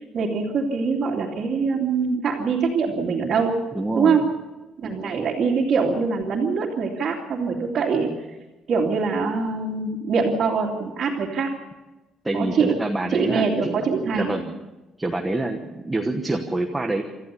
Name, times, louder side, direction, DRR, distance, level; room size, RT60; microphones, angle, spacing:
voice 1, 0.1-3.6 3.9-4.3 4.8-8.1 8.7-11.5 12.3-12.7 13.1-14.3, right 5 dB, 40° right, -5 dB, 2.7 m, -23 dB
voice 2, 3.7-4.2 12.2-13.8 14.2-14.5 15.0-17.0, right 2 dB, 10° right, 3 dB, 1.2 m, -26 dB
26.0 x 14.5 x 6.9 m, 1.1 s
cardioid pair, 175°, 0 cm